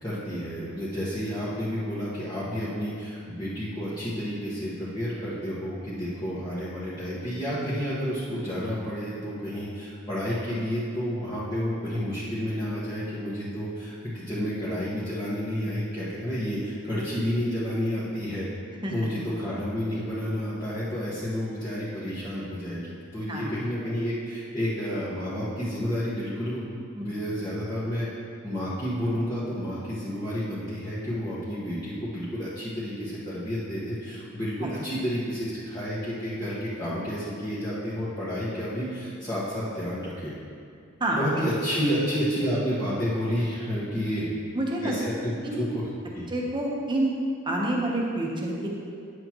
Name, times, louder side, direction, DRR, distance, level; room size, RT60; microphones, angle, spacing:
voice 1, 0.0-18.5 18.9-28.1 28.4-40.3 41.1-44.3 44.8-45.8 46.1-46.2, equal, 20° left, -12 dB, 1.4 m, -30 dB
voice 2, 41.0-41.4 44.5-45.0 45.4-45.6 46.3-47.1 47.4-48.7, right 1 dB, 25° right, -2 dB, 1.1 m, -28 dB
9.9 x 8.0 x 3.1 m, 2.3 s
head